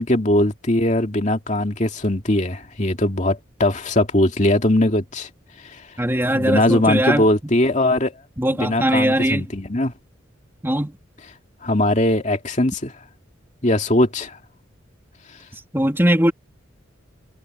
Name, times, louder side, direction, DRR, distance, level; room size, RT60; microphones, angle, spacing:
voice 1, 0.0-5.3 5.6-5.8 6.3-8.1 8.6-9.9 11.6-12.9 13.6-14.4, left 1 dB, 40° left, 2.5 m, -20 dB
voice 2, 6.0-7.3 8.4-9.4 10.6-10.9 15.7-16.3, right 1 dB, 10° right, 3.2 m, -20 dB
head